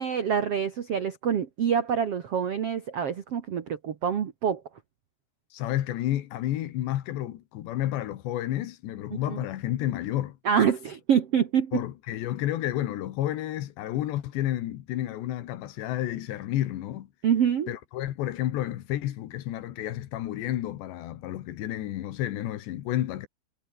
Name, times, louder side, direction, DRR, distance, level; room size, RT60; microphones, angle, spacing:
voice 1, 0.0-4.6 9.1-9.4 10.4-11.8 17.2-17.7, right 8 dB, 80° right, 1.3 m, -26 dB
voice 2, 5.5-10.4 11.7-17.1 17.7-23.3, left 13 dB, 75° left, 3.6 m, -31 dB
omnidirectional pair, 5.2 m